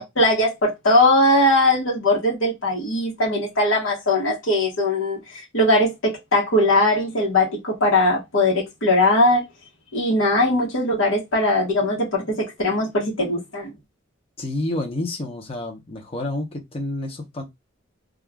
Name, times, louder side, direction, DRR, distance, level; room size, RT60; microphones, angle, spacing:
voice 1, 0.0-9.4 9.9-13.7, left 1 dB, 85° left, 1.1 m, -20 dB
voice 2, 14.4-17.4, left 2 dB, 30° left, 0.7 m, -29 dB
2.4 x 2.4 x 3.3 m
head